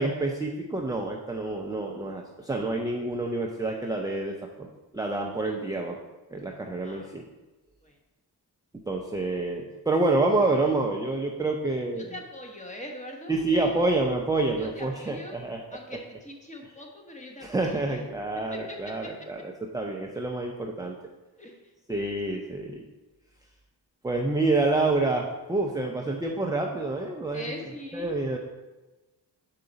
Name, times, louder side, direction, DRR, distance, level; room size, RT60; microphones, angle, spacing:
voice 1, 0.0-4.3 4.6-4.7 4.9-6.0 6.3-7.3 8.9-12.1 13.3-15.8 16.6-16.7 17.4-20.9 21.9-22.8 24.0-27.5 27.9-28.4, right 2 dB, 10° right, 0 dB, 0.5 m, -28 dB
voice 2, 12.0-13.9 14.6-15.4 15.7-17.9 18.5-18.8 21.4-21.5 22.0-22.2 27.3-28.2, left 1 dB, 15° left, 1 dB, 1.2 m, -42 dB
6.6 x 4.8 x 4.0 m, 1.2 s
cardioid pair, 85°, 41 cm